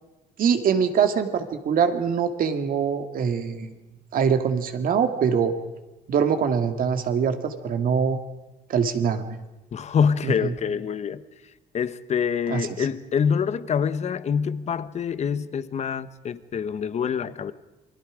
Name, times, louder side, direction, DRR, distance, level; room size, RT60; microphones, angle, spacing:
voice 1, 0.4-3.7 4.1-5.5 6.1-8.2 8.7-9.4 10.2-10.5 12.5-12.7, right 7 dB, 55° right, 7 dB, 2.1 m, -23 dB
voice 2, 9.7-11.2 11.7-17.5, left 7 dB, 40° left, 14 dB, 1.0 m, -25 dB
28.5 x 21.5 x 5.1 m, 1.1 s
cardioid pair, 110°, 17 cm